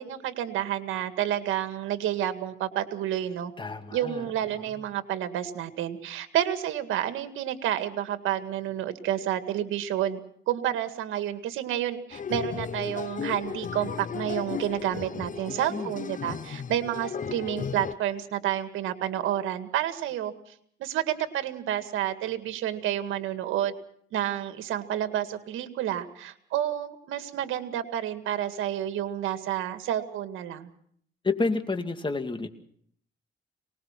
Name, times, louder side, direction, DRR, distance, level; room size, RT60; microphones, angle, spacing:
voice 1, 0.0-3.5 3.9-10.2 10.5-20.3 20.8-23.7 24.1-30.7, right 11 dB, 90° right, 9 dB, 2.0 m, -30 dB
voice 2, 3.6-4.3 15.5-15.9 31.2-32.5, left 3 dB, 25° left, 8 dB, 2.5 m, -30 dB
sound 1, 12.1-17.9, left 7 dB, 40° left, 0.8 m, -35 dB
23.5 x 20.0 x 6.0 m, 0.64 s
cardioid pair, 90°, 20 cm